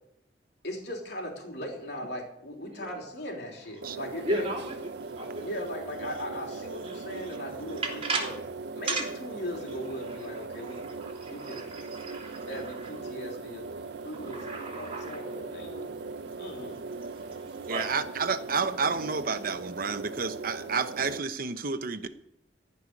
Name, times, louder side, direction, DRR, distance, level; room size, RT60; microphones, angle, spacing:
voice 1, 0.6-4.5 5.4-8.4 8.7-11.0 11.3-11.7 12.5-13.7 14.0-16.0 16.4-16.8, equal, 70° left, 1 dB, 3.4 m, -39 dB
voice 2, 2.7-3.0 4.2-5.5 6.0-6.1 6.8-7.4 7.7-8.4 8.8-9.0 10.0-12.9 13.9-15.3 16.3-16.4 17.0-17.9, right 2 dB, 35° right, 0 dB, 3.3 m, -36 dB
sound 1, 3.8-21.2, right 3 dB, 70° right, 0.5 m, -40 dB
voice 3, 17.7-22.1, right 5 dB, 55° right, 10 dB, 0.9 m, -30 dB
15.5 x 5.7 x 9.6 m, 0.78 s
head